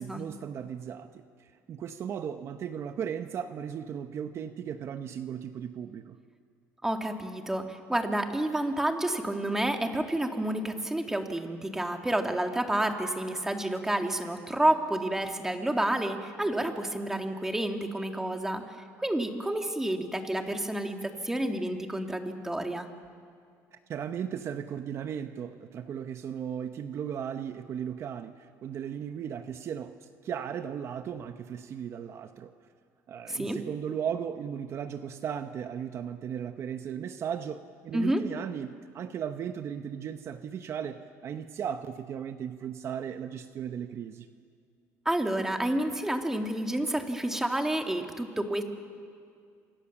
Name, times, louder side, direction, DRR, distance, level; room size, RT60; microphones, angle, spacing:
voice 1, 0.0-6.2 23.7-32.5 33.1-44.3, right 8 dB, 45° right, 8 dB, 1.0 m, -36 dB
voice 2, 6.8-22.9 33.3-33.6 37.9-38.2 45.1-48.6, right 1 dB, 5° right, 4 dB, 2.2 m, -29 dB
28.0 x 25.5 x 7.3 m, 2.2 s
cardioid pair, 125°, 6 cm